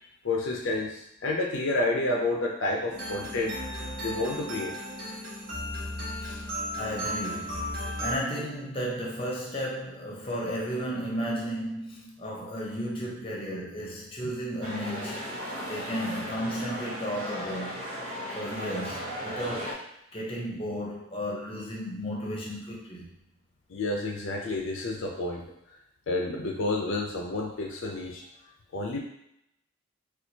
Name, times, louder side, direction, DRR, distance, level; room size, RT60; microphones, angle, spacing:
voice 1, 0.2-3.6 4.0-4.8 6.2-6.4 23.7-25.5 26.1-28.2 28.7-29.0, left 2 dB, 70° left, 0 dB, 0.5 m, -30 dB
sound 1, 2.9-8.2, equal, 45° right, 1.2 m, -35 dB
voice 2, 6.4-15.3 15.7-17.8 18.3-19.8 20.1-23.1, equal, 25° left, -3 dB, 0.7 m, -34 dB
sound 2, 14.6-19.7, equal, 75° right, 0.9 m, -36 dB
4.3 x 2.4 x 2.7 m, 0.79 s
head